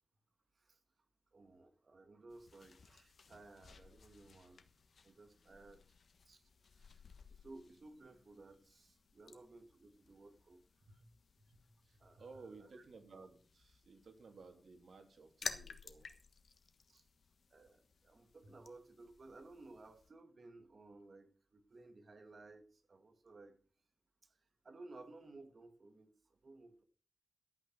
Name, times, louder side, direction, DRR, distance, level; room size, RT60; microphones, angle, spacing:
voice 1, 1.3-4.6 5.0-5.8 6.3-6.4 7.4-10.6 12.0-12.8 16.9-17.0 17.5-23.6 24.6-26.1 26.4-26.8, right 2 dB, 55° right, 7 dB, 2.0 m, -57 dB
sound 1, 2.3-20.1, left 5 dB, 80° left, 1.3 m, -55 dB
voice 2, 11.4-16.1 18.4-18.5, right 4 dB, 85° right, 4 dB, 3.1 m, -57 dB
13.0 x 9.0 x 6.1 m, 0.41 s
wide cardioid pair, 125°, 0 cm